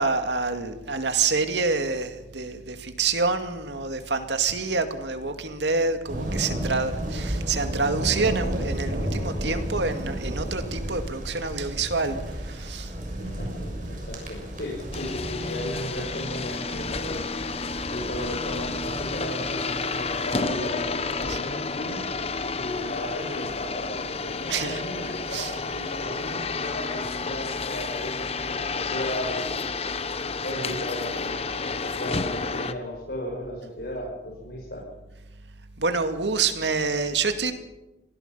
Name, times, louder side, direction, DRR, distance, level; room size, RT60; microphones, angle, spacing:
voice 1, 0.0-12.2 12.4-12.9 21.3-21.4 24.5-24.8 25.3-25.5 35.8-37.5, right 4 dB, 75° right, 7 dB, 2.4 m, -27 dB
sound 1, 6.1-20.5, right 1 dB, 45° right, 6.9 m, -33 dB
voice 2, 13.2-17.3 17.9-22.0 22.5-29.7 30.4-34.8, left 1 dB, 65° left, -4 dB, 7.1 m, -35 dB
sound 2, 14.9-32.7, left 4 dB, 35° left, 1.1 m, -31 dB
25.5 x 19.5 x 5.8 m, 1.0 s
head